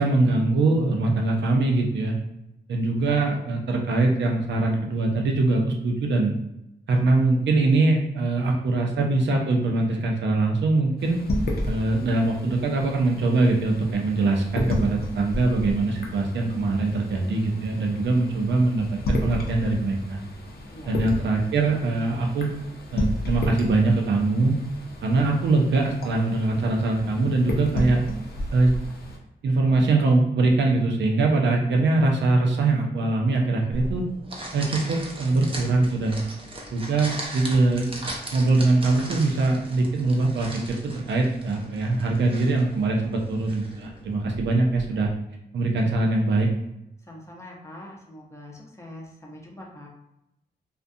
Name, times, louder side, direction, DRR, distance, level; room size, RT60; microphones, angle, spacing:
voice 1, 0.0-2.2 2.7-6.3 6.9-11.2 11.7-20.2 20.9-22.5 22.9-24.6 25.0-28.0 28.5-28.7 29.4-34.0 34.5-36.2 36.7-37.9 38.3-45.1 45.5-46.5, right 2 dB, 90° right, 1 dB, 0.5 m, -22 dB
sound 1, 11.0-29.2, left 1 dB, 60° left, 0.5 m, -33 dB
voice 2, 20.7-21.0 28.1-28.7 47.0-49.9, left 1 dB, 15° left, -2 dB, 0.6 m, -44 dB
sound 2, 33.7-45.1, right 1 dB, 30° right, 0.5 m, -38 dB
2.4 x 2.2 x 2.6 m, 0.85 s
cardioid pair, 85°, 18 cm